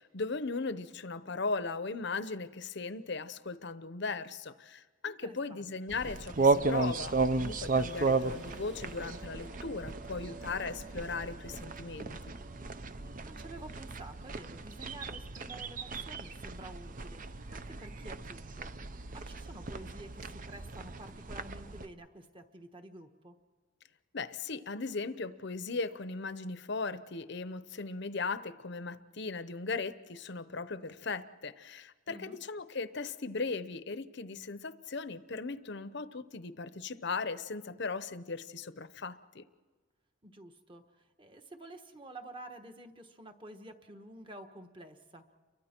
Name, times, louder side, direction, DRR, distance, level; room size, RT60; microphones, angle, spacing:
voice 1, 0.0-12.3 24.1-39.4, left 4 dB, 55° left, 13 dB, 0.8 m, -38 dB
voice 2, 5.0-5.7 13.2-18.7 19.1-23.4 32.1-32.4 40.2-45.2, right 1 dB, 25° right, 6 dB, 1.3 m, -50 dB
sound 1, 5.9-21.9, right 3 dB, 40° right, 0.7 m, -34 dB
sound 2, 6.2-17.9, right 3 dB, 55° right, 3.0 m, -55 dB
30.0 x 23.5 x 4.5 m, 1.4 s
head